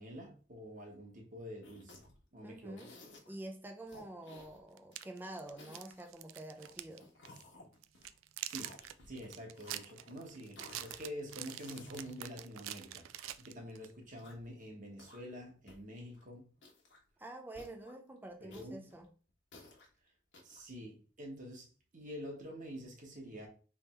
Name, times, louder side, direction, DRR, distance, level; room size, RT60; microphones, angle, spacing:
voice 1, 0.0-2.0 2.3-2.8 8.5-8.7 9.0-16.5 18.4-18.8 20.4-21.7 21.9-23.5, equal, 40° right, 1.3 m, -47 dB
sound 1, 1.6-2.2 2.8-3.4 3.9-5.1 5.5-6.1 6.6-8.1 8.5-9.3 9.5-10.2 10.6-11.0 11.4-13.3 14.0-14.5 14.9-15.4 15.7-15.8 16.1-16.2 16.6-17.1 17.5-17.9 18.5-19.9 20.3-20.6, left 2 dB, 60° left, 1.2 m, -57 dB
voice 2, 2.4-2.9 3.3-7.1 17.2-19.1, right 1 dB, 10° right, 0.5 m, -48 dB
sound 2, 3.9-4.0 4.8-7.0 7.2-7.4 7.8-13.9, right 13 dB, 70° right, 0.3 m, -46 dB
3.5 x 3.3 x 4.4 m
head